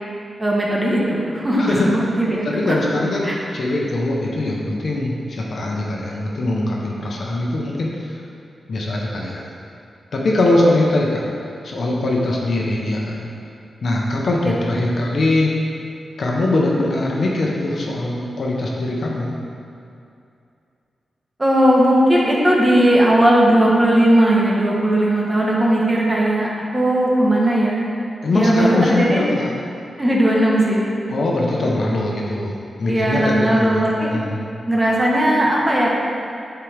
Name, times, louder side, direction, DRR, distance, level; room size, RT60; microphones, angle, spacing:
voice 1, 0.4-2.7 3.2-3.4 14.4-14.5 21.4-27.9 28.3-29.2 30.0-30.9 32.8-34.1 34.7-36.0, right 1 dB, 15° right, -4 dB, 1.2 m, -17 dB
voice 2, 1.6-1.9 2.4-8.2 8.7-9.4 10.1-11.2 11.6-13.3 13.8-15.5 16.2-19.4 28.2-29.5 31.1-34.4, left 2 dB, 55° left, -2 dB, 1.0 m, -21 dB
11.0 x 4.6 x 3.5 m, 2.5 s
wide cardioid pair, 135°, 0 cm